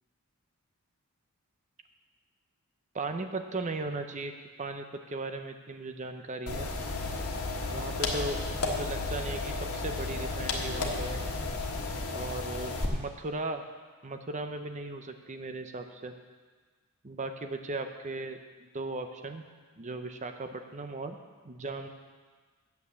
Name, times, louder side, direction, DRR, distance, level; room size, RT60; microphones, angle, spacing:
voice 1, 2.9-4.3 4.6-6.7 7.7-8.4 8.7-11.2 12.1-13.6 14.0-16.1 17.0-19.4 19.8-21.2 21.4-21.9, right 2 dB, 35° right, 6 dB, 0.7 m, -37 dB
sound 1, 6.5-12.8, left 3 dB, 80° left, 1.4 m, -33 dB
8.9 x 7.0 x 7.0 m, 1.5 s
head